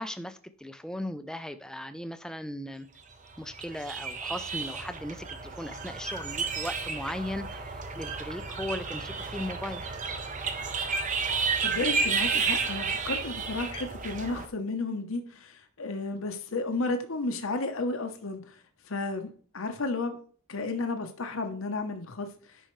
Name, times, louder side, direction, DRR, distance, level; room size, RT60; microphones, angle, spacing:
voice 1, 0.0-2.9 3.4-10.0, left 1 dB, 5° left, 0.4 m, -37 dB
sound 1, 3.3-14.5, right 5 dB, 35° right, 0.8 m, -32 dB
voice 2, 11.6-18.6 18.9-20.2 20.5-22.3, left 3 dB, 70° left, 0.9 m, -32 dB
10.0 x 5.5 x 3.2 m
head